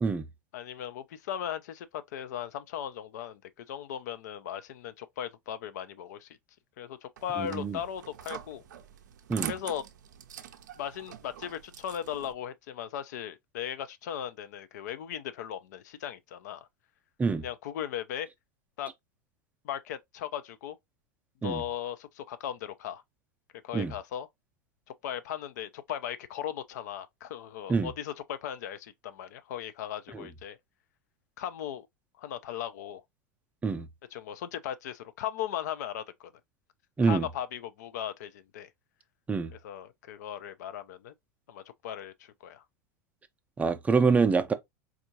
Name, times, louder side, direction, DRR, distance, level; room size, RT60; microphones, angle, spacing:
voice 1, 0.5-6.3 6.8-8.6 9.5-9.8 10.8-16.7 17.4-18.3 18.8-18.9 19.6-20.8 21.4-23.0 23.6-24.3 25.0-30.6 31.4-31.9 32.2-33.0 34.1-36.3 37.0-38.7 39.5-41.1 41.5-42.6, left 10 dB, 60° left, 0.4 m, -37 dB
sound 1, 7.2-12.3, right 10 dB, 70° right, 0.4 m, -43 dB
voice 2, 7.4-7.8 9.3-9.5 17.2-17.4 21.4-21.6 23.7-23.9 27.7-27.9 30.1-30.2 33.6-33.9 37.0-37.3 39.3-39.5 43.6-44.5, right 4 dB, 15° right, 0.5 m, -26 dB
4.3 x 2.4 x 2.7 m
figure-of-eight pair, 90°, 10 cm